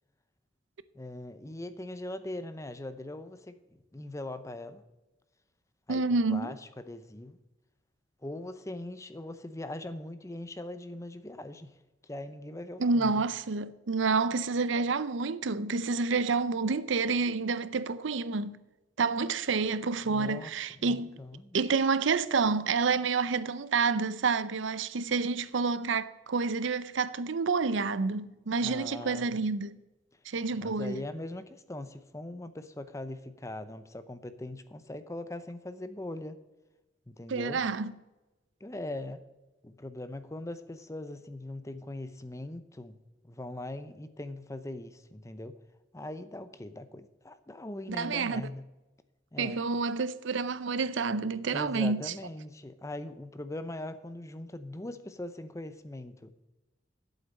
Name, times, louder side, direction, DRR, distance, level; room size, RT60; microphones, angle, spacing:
voice 1, 0.9-4.8 5.9-7.4 8.2-11.8 12.0-13.1 20.1-20.5 20.8-21.6 28.6-29.4 30.6-36.4 37.1-37.6 38.6-39.2 39.6-43.0 43.2-45.6 45.9-48.6 49.3-49.6 51.5-56.3, left 1 dB, 15° left, 0.6 m, -41 dB
voice 2, 5.9-6.6 12.8-18.6 19.0-21.2 21.5-29.8 30.3-31.0 37.3-37.9 47.9-48.4 49.4-52.1, right 4 dB, 75° right, 0.6 m, -29 dB
8.5 x 8.0 x 7.3 m
head